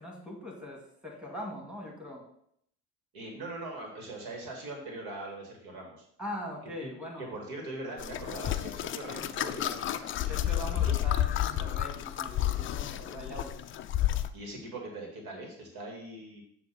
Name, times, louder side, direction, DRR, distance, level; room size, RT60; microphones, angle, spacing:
voice 1, 0.0-2.3 6.2-7.3 9.0-9.2 10.3-13.6, left 1 dB, ahead, -2 dB, 2.1 m, -41 dB
voice 2, 3.1-5.9 6.8-6.9 7.2-10.9 14.3-16.4, right 2 dB, 60° right, 2 dB, 1.7 m, -41 dB
sound 1, 8.0-14.3, left 12 dB, 30° left, 0.4 m, -31 dB
7.5 x 2.6 x 5.7 m, 0.70 s
hypercardioid pair, 75°, 41 cm